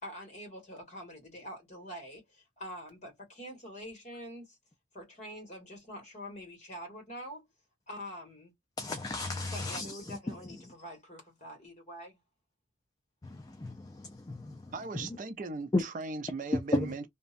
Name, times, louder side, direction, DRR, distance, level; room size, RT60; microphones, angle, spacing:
voice 1, 0.0-4.6 4.9-7.5 7.9-8.5 9.5-12.2, equal, 40° left, 1.4 m, -45 dB
voice 2, 8.8-10.2 13.2-14.6 15.7-15.8 16.7-16.9, left 2 dB, 20° left, 0.3 m, -33 dB
voice 3, 14.7-17.1, right 3 dB, 45° right, 0.4 m, -38 dB
2.6 x 2.1 x 2.4 m
head